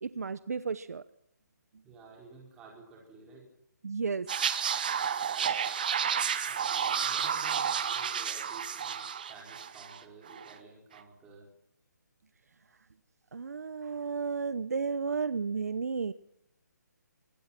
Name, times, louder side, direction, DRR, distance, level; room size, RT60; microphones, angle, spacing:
voice 1, 0.0-1.0 3.8-4.3 13.3-16.1, right 5 dB, 60° right, 15 dB, 0.9 m, -33 dB
voice 2, 1.8-3.5 6.5-11.5, right 3 dB, 10° right, -2 dB, 5.0 m, -53 dB
sound 1, 4.3-10.0 10.3-10.5, right 7 dB, 30° right, 1.4 m, -31 dB
25.0 x 22.0 x 6.0 m, 0.77 s
hypercardioid pair, 180°, 10 cm